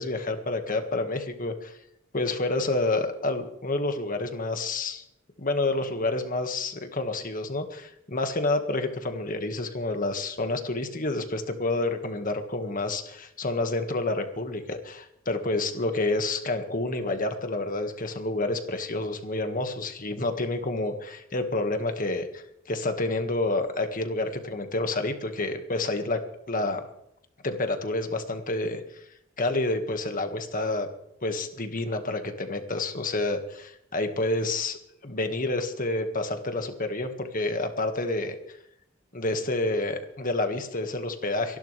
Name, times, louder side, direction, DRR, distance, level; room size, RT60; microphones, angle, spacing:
voice 1, 0.0-1.7 2.1-5.0 5.4-26.2 26.5-26.8 27.4-28.8 29.4-30.9 31.2-34.8 35.0-38.6 39.1-41.6, left 2 dB, 45° left, 6 dB, 1.8 m, -29 dB
24.5 x 11.5 x 3.4 m, 0.76 s
head